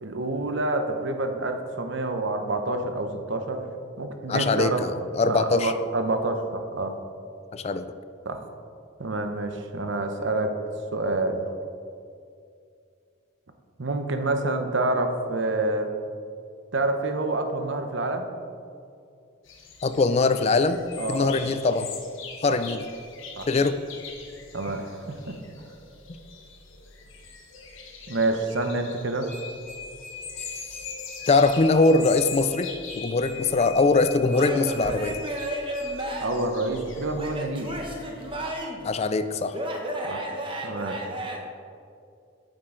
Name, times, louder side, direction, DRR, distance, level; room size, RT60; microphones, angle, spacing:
voice 1, 0.0-3.6 4.0-4.8 5.3-7.0 8.3-8.4 9.0-10.6 10.9-11.4 13.8-15.9 16.7-18.3 21.0-21.5 22.4-22.6 23.4-23.5 24.5-25.4 28.1-29.3 36.2-37.7 40.0-40.2 40.6-41.0, right 2 dB, 60° right, 6 dB, 0.8 m, -27 dB
voice 2, 4.3-5.7 7.5-7.9 19.8-20.8 21.1-21.9 22.4-22.9 23.5-23.8 30.5-30.8 31.3-32.7 33.0-35.2 38.8-39.6, left 3 dB, 30° left, 10 dB, 0.3 m, -22 dB
sound 1, 19.4-38.5, left 5 dB, 70° left, 1.1 m, -43 dB
sound 2, 29.3-35.9, left 4 dB, 10° left, 1.7 m, -43 dB
Male speech man speaking / Yell / Laughter, 34.3-36.5 37.2-38.9 39.5-41.4, right 1 dB, 25° right, 0.8 m, -32 dB
8.8 x 7.5 x 3.8 m, 2.4 s
head